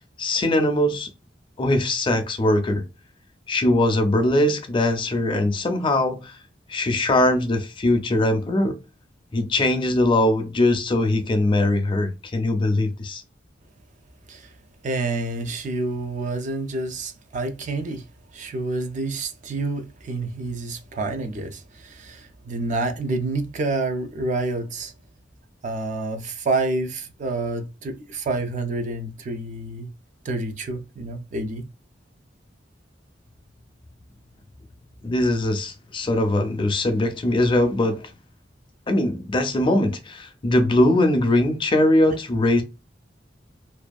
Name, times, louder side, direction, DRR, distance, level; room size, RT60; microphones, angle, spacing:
voice 1, 0.2-1.1 1.6-2.8 3.5-6.3 6.7-8.8 9.3-13.2 35.0-38.0 38.9-42.6, left 1 dB, 30° left, 0.4 m, -21 dB
voice 2, 14.8-18.0 18.3-24.9 25.6-29.9 30.2-31.7, right 2 dB, 45° right, 0.4 m, -28 dB
2.5 x 2.2 x 2.3 m
head